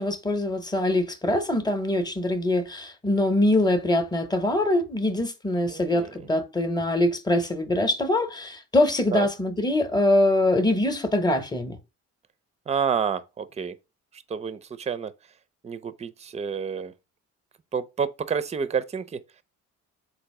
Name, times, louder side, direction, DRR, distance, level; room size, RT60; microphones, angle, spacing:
voice 1, 0.0-11.8, left 1 dB, 15° left, 0.8 m, -23 dB
voice 2, 5.7-6.1 9.1-9.3 12.7-13.7 14.1-15.1 15.6-16.9 17.7-19.2, right 6 dB, 20° right, 0.4 m, -29 dB
3.8 x 2.6 x 4.7 m
cardioid pair, 90°, 30 cm